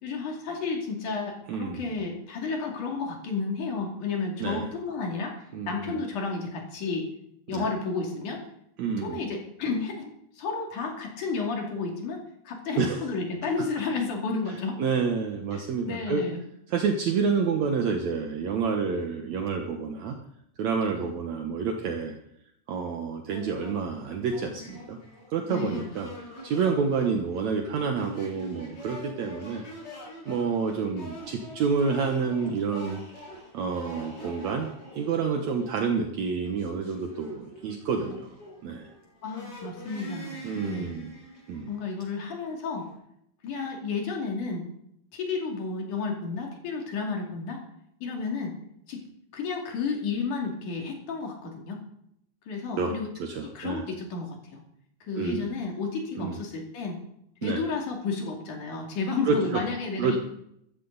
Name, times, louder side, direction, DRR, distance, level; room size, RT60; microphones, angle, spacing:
voice 1, 0.0-5.4 5.7-7.1 7.5-8.4 9.0-14.8 15.5-16.4 25.5-25.8 39.2-40.9 41.7-42.9 43.4-44.7 45.1-47.6 48.0-48.6 48.9-49.0 49.3-51.8 52.5-53.1 53.4-54.6 55.1-57.0 57.4-60.2, left 4 dB, 75° left, 1 dB, 4.0 m, -32 dB
voice 2, 1.5-2.0 4.4-4.7 5.5-6.0 7.5-7.7 8.8-9.2 12.8-13.0 14.8-16.2 16.7-20.2 20.6-22.2 22.7-25.0 25.3-26.1 26.4-29.7 30.3-33.0 33.5-34.7 35.0-38.3 38.6-38.9 40.4-41.1 41.5-41.7 52.8-52.9 53.2-53.8 55.2-55.5 56.2-56.4 57.4-57.6 59.2-59.6 60.0-60.2, right 5 dB, 65° right, 3 dB, 2.3 m, -28 dB
sound 1, 23.3-42.9, equal, 30° left, 6.9 m, -45 dB
14.0 x 14.0 x 4.0 m, 0.75 s
omnidirectional pair, 3.6 m